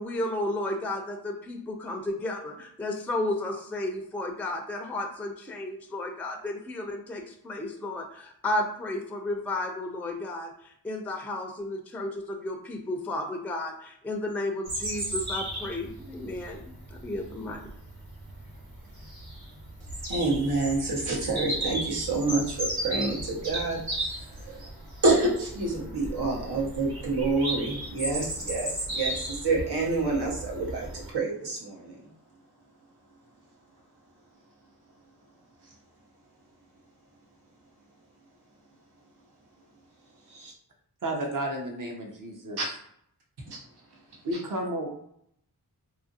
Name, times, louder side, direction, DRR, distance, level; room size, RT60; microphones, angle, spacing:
voice 1, 0.0-17.6, left 1 dB, 5° left, 3 dB, 0.3 m, -33 dB
Bird vocalization bird call bird song, 14.6-31.1, right 1 dB, 70° right, 1.1 m, -35 dB
voice 2, 20.1-23.8 24.4-24.6 25.0-32.0 40.3-40.5 42.6-42.7 43.5-43.6, right 3 dB, 90° right, -3 dB, 0.9 m, -28 dB
voice 3, 41.0-42.6 44.2-44.9, right 1 dB, 55° right, 1 dB, 0.7 m, -32 dB
2.8 x 2.4 x 2.6 m, 0.69 s
wide cardioid pair, 70°, 39 cm